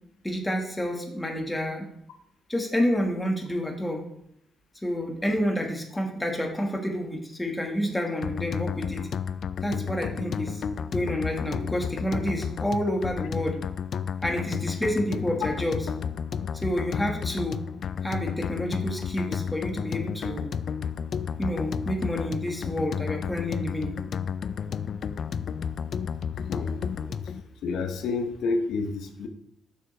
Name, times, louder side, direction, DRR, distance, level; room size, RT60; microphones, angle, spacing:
voice 1, 0.2-1.9 2.5-4.0 4.8-9.1 9.6-13.6 14.2-15.8 16.5-17.6 18.0-20.5 21.4-23.9 27.0-27.3, equal, 10° left, 1 dB, 1.5 m, -29 dB
sound 1, 8.2-27.4, left 7 dB, 55° left, 0.3 m, -32 dB
voice 2, 26.5-26.8 27.6-29.3, left 3 dB, 75° left, 6 dB, 0.7 m, -29 dB
6.7 x 6.6 x 3.2 m, 0.75 s
cardioid pair, 90°, 0 cm